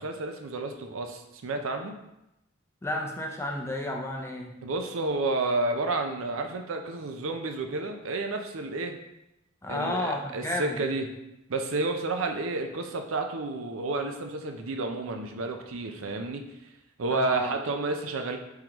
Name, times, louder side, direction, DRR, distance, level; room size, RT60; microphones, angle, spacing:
voice 1, 0.0-2.0 4.6-8.9 9.7-11.1 11.5-16.4 17.0-18.4, right 3 dB, 80° right, 5 dB, 0.5 m, -30 dB
voice 2, 2.8-4.5 9.6-10.8 17.1-17.5, left 1 dB, 15° left, 1 dB, 0.5 m, -32 dB
4.6 x 3.7 x 3.0 m, 0.90 s
head